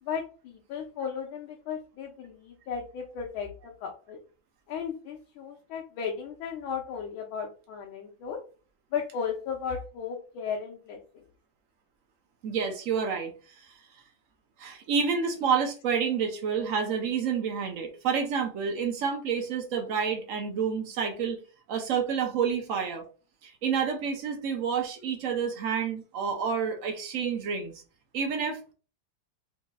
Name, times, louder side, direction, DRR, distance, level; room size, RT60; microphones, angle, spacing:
voice 1, 0.0-4.2 4.7-8.4 8.9-11.2, left 6 dB, 90° left, 0 dB, 1.5 m, -35 dB
voice 2, 12.4-13.7 14.6-21.4 21.7-23.0 23.4-27.7 28.1-28.7, right 6 dB, 85° right, 4 dB, 0.7 m, -29 dB
4.5 x 2.8 x 2.2 m, 0.36 s
omnidirectional pair, 2.2 m